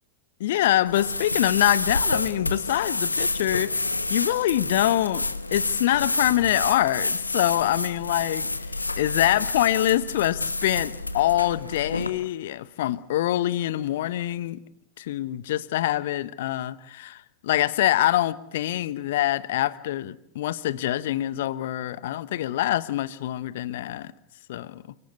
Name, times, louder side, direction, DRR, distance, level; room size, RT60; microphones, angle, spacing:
voice 1, 0.4-3.8 4.1-5.2 5.5-8.5 9.0-14.6 15.0-24.1 24.5-24.8, left 14 dB, 55° left, 1.0 m, -25 dB
sound 1, 0.9-12.1, left 3 dB, 80° left, 1.2 m, -29 dB
29.0 x 18.0 x 8.1 m
figure-of-eight pair, 90°, 0 cm